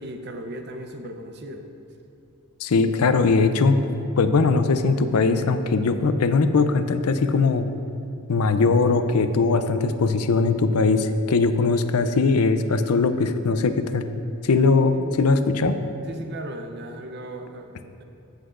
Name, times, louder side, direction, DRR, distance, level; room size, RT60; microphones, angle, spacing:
voice 1, 0.0-1.7 14.9-15.3 16.0-18.0, right 1 dB, 50° right, 5 dB, 0.7 m, -37 dB
voice 2, 2.6-3.8 4.2-7.7 8.3-14.0 14.4-15.8, left 4 dB, 85° left, 10 dB, 0.5 m, -20 dB
14.5 x 7.9 x 2.5 m, 2.8 s
head